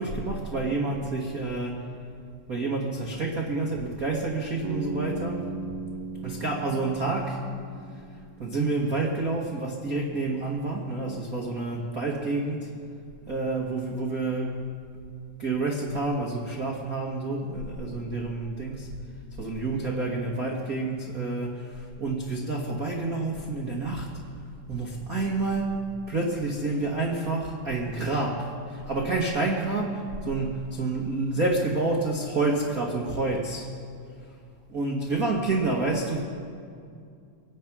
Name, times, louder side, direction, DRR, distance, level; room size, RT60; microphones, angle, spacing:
voice 1, 0.0-1.8 2.5-5.8 6.2-7.5 8.4-12.7 13.3-14.6 15.4-18.9 19.4-24.1 24.7-33.7 34.7-36.2, right 3 dB, 85° right, -2 dB, 0.7 m, -29 dB
Bass guitar, 4.6-8.7, right 2 dB, 70° right, 1.1 m, -37 dB
23.5 x 9.3 x 6.0 m, 2.3 s
omnidirectional pair, 4.1 m